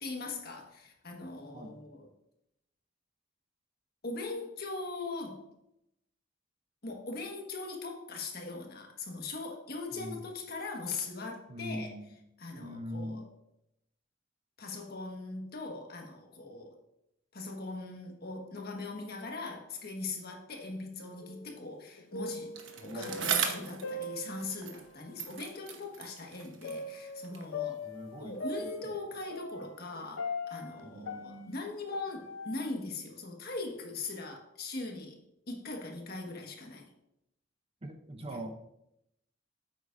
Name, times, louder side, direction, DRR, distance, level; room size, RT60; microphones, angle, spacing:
voice 1, 0.0-2.1 4.0-5.4 6.8-11.9 12.4-13.3 14.6-16.8 17.3-22.6 22.8-27.8 28.2-35.2 35.5-36.8 38.3-38.4, left 3 dB, 55° left, 1 dB, 1.6 m, -40 dB
voice 2, 9.9-10.3 11.5-12.1 12.6-13.2 22.8-23.2 27.8-28.4 28.6-28.8 30.8-31.5 37.8-38.5, equal, 30° right, 6 dB, 0.7 m, -42 dB
sound 1, 21.2-21.7 22.0-24.8 25.6-25.7 26.6-32.6, left 3 dB, 85° left, 0.7 m, -40 dB
Bicycle, 22.6-24.9 25.2-27.6 28.3-28.4, right 7 dB, 80° right, 1.1 m, -37 dB
9.1 x 8.1 x 2.6 m, 0.82 s
head